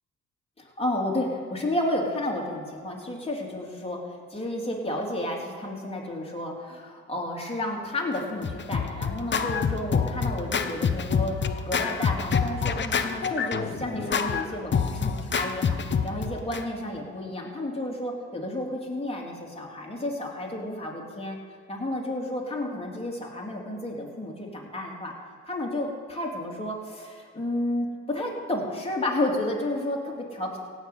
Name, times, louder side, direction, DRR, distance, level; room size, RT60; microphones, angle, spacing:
voice 1, 0.6-4.0 4.3-21.4 21.7-25.1 25.4-30.6, left 1 dB, 20° left, -2 dB, 3.5 m, -31 dB
Scratching (performance technique), 8.2-16.6, left 6 dB, 40° left, 1.0 m, -27 dB
17.0 x 6.3 x 8.5 m, 2.2 s
cardioid pair, 90°, 30 cm